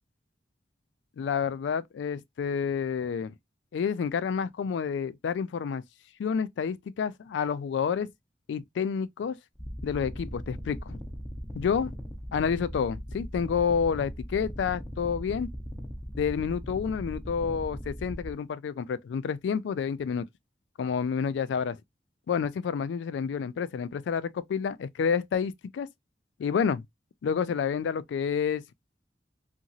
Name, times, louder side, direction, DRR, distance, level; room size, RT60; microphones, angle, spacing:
voice 1, 1.2-3.3 3.7-5.8 6.2-8.1 8.5-9.4 9.8-11.0 11.6-11.9 12.3-15.5 16.2-20.3 20.8-21.8 22.3-25.9 26.4-26.8 27.2-28.6, left 6 dB, 90° left, 0.3 m, -29 dB
sound 1, 9.6-18.3, equal, 5° left, 0.5 m, -39 dB
2.8 x 2.6 x 2.4 m
head